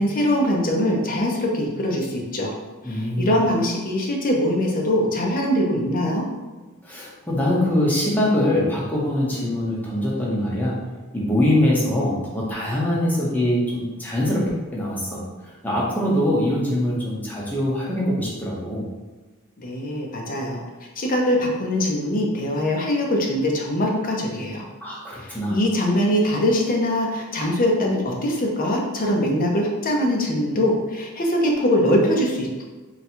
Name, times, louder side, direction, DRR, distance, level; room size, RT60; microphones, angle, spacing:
voice 1, 0.0-2.5 2.8-6.2 19.6-20.6 21.0-24.6 25.2-32.6, left 1 dB, 40° left, 0 dB, 0.7 m, -22 dB
voice 2, 2.8-3.3 6.8-10.8 11.1-15.2 15.6-18.8 24.8-25.5, left 1 dB, 10° left, -5 dB, 0.9 m, -23 dB
4.0 x 2.3 x 4.4 m, 1.2 s
head